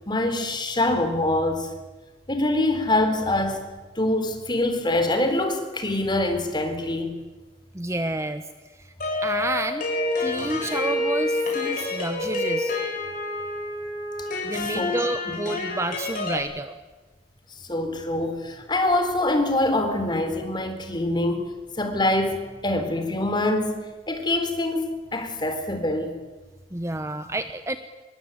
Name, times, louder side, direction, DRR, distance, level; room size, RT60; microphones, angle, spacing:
voice 1, 0.0-1.8 2.3-3.6 4.0-7.2 14.2-14.3 14.7-15.0 17.6-23.8 24.1-26.2, left 1 dB, 25° left, 3.8 m, -24 dB
voice 2, 7.7-8.4 8.7-8.9 9.2-12.8 14.4-16.8 26.7-27.8, right 1 dB, 15° right, 1.0 m, -30 dB
sound 1, 9.0-16.4, left 2 dB, 45° left, 7.6 m, -28 dB
26.0 x 22.5 x 9.1 m
head